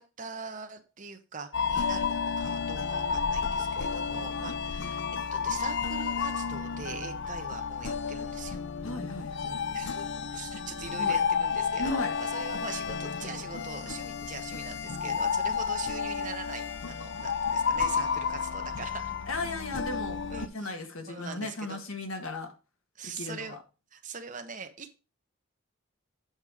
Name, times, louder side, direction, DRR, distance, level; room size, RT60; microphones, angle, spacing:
voice 1, 0.0-2.1 2.4-5.0 5.3-8.6 9.5-10.1 10.3-19.2 20.3-20.7 21.1-21.8 22.9-23.6 23.9-25.0, right 5 dB, 40° right, 5 dB, 1.2 m, -42 dB
sound 1, 1.5-20.5, left 6 dB, 55° left, 0.6 m, -31 dB
voice 2, 8.8-9.6 10.9-11.2 11.8-12.1 19.3-20.2 20.5-22.5 23.0-23.6, left 2 dB, 75° left, 5 dB, 1.8 m, -36 dB
8.3 x 5.4 x 5.0 m, 0.31 s
head